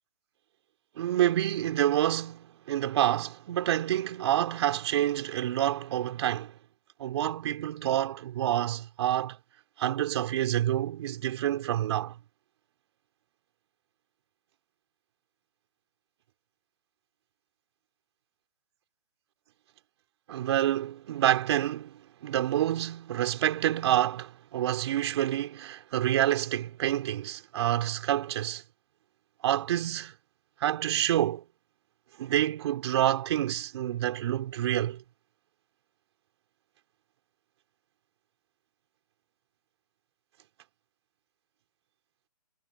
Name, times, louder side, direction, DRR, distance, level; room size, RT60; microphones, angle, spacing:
voice 1, 0.9-6.6 7.0-9.4 9.8-12.2 20.3-28.6 29.4-30.1 30.6-31.4 32.2-35.0, right 12 dB, 40° right, 4.7 m, -28 dB
hypercardioid pair, 155°, 21 cm